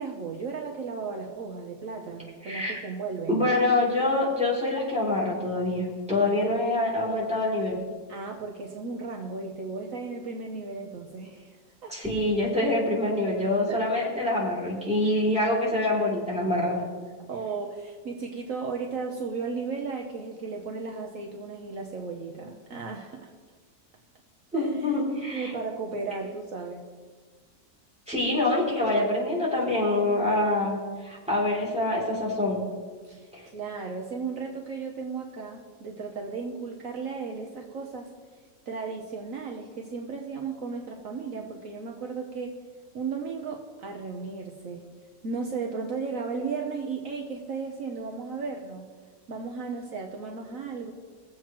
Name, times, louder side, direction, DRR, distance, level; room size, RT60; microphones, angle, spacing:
voice 1, 0.0-3.5 8.1-11.6 11.8-11.9 13.7-13.8 17.3-23.3 24.5-24.9 25.3-26.8 33.0-38.1 38.7-42.5 42.9-44.8 45.2-48.9 49.3-50.9, right 4 dB, 65° right, 1 dB, 1.3 m, -35 dB
voice 2, 2.4-2.8 3.3-7.8 11.9-16.8 24.5-25.5 28.1-32.6 33.3-33.5, left 2 dB, 5° right, -6 dB, 3.0 m, -25 dB
21.0 x 7.7 x 3.0 m, 1.5 s
omnidirectional pair, 1.6 m